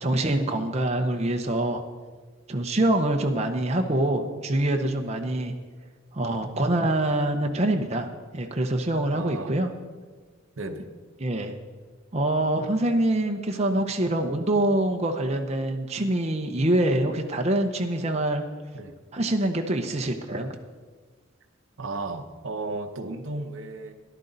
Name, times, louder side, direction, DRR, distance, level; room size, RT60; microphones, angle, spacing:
voice 1, 0.0-1.8 2.5-5.5 6.1-9.7 11.2-11.5 12.1-18.4 19.1-20.5, right 1 dB, 30° right, 4 dB, 0.8 m, -25 dB
voice 2, 9.0-9.6 10.6-10.8 13.1-13.2 18.7-18.9 21.8-23.9, right 2 dB, 70° right, 7 dB, 0.8 m, -34 dB
13.5 x 11.0 x 4.0 m, 1.4 s
head